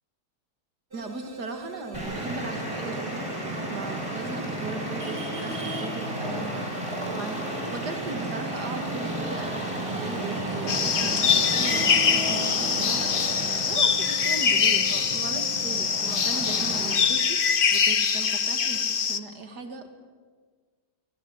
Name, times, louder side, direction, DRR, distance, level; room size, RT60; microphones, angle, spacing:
sound 1, 0.9-15.8, right 4 dB, 35° right, 4.1 m, -43 dB
voice 1, 0.9-19.9, right 3 dB, 75° right, 6 dB, 2.5 m, -38 dB
Traffic noise roadway noise, 1.9-16.9, right 1 dB, 15° right, 5.6 m, -33 dB
sound 2, 10.7-19.2, left 6 dB, 40° left, 0.9 m, -24 dB
21.0 x 20.5 x 9.9 m, 1.5 s
omnidirectional pair, 1.8 m